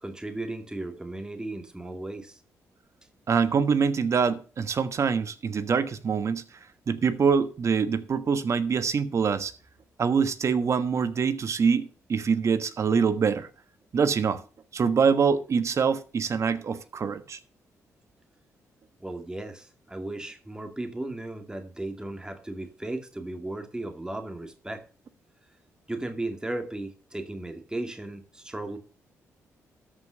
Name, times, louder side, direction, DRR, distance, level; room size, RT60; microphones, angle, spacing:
voice 1, 0.0-2.4 19.0-24.8 25.9-28.8, right 2 dB, 10° right, 2.3 m, -35 dB
voice 2, 3.3-6.4 6.9-9.5 10.0-13.5 13.9-14.4 14.7-17.4, right 6 dB, 55° right, 1.3 m, -24 dB
13.0 x 5.7 x 6.4 m
cardioid pair, 70°, 6 cm